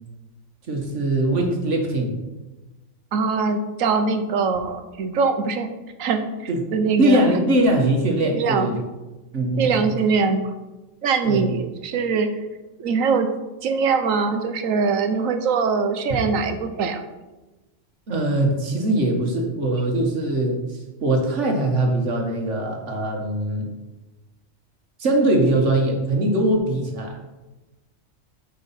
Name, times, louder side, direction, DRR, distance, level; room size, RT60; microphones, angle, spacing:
voice 1, 0.7-2.1 6.5-8.8 9.3-9.7 11.2-11.5 16.1-16.2 18.1-20.6 21.0-23.7 25.0-27.2, right 1 dB, 65° right, 2 dB, 1.7 m, -21 dB
voice 2, 3.1-5.7 6.0-6.2 6.7-7.3 8.2-8.7 9.6-10.5 11.0-12.3 12.8-13.3 13.6-17.0, right 5 dB, 85° right, 8 dB, 1.2 m, -22 dB
8.4 x 4.5 x 5.7 m, 1.1 s
omnidirectional pair, 1.3 m